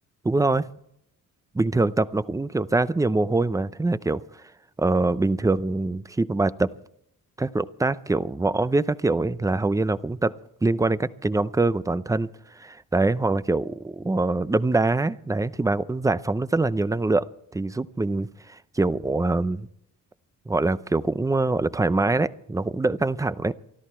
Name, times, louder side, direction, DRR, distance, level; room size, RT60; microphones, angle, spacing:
voice 1, 0.2-0.7 1.5-4.2 4.8-6.7 7.4-10.3 10.6-12.3 12.6-17.2 17.5-19.7 20.5-23.5, right 2 dB, 10° right, 16 dB, 0.6 m, -24 dB
24.0 x 13.5 x 4.4 m, 0.77 s
cardioid pair, 105°, 33 cm